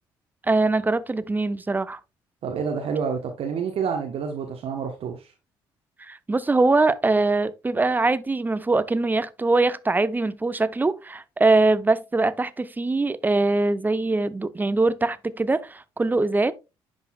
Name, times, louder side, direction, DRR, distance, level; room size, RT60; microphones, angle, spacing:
voice 1, 0.4-2.0 6.0-16.5, right 3 dB, 15° right, 0.6 m, -22 dB
voice 2, 2.4-5.3, right 6 dB, 55° right, 1.0 m, -28 dB
11.0 x 4.0 x 2.2 m
hypercardioid pair, 50°, 12 cm